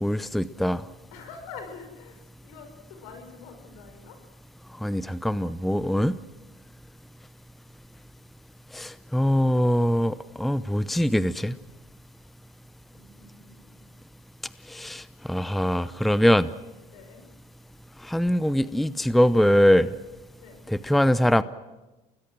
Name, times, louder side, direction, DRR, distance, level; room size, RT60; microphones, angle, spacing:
voice 1, 0.0-0.8 4.8-6.1 8.7-11.6 14.7-16.5 18.0-19.9 20.7-21.4, equal, ahead, 15 dB, 0.7 m, -22 dB
voice 2, 1.1-4.2 12.9-13.9 16.9-17.2 20.4-20.6, left 5 dB, 80° left, 6 dB, 5.7 m, -45 dB
29.0 x 20.5 x 6.3 m, 1.1 s
hypercardioid pair, 75°, 20 cm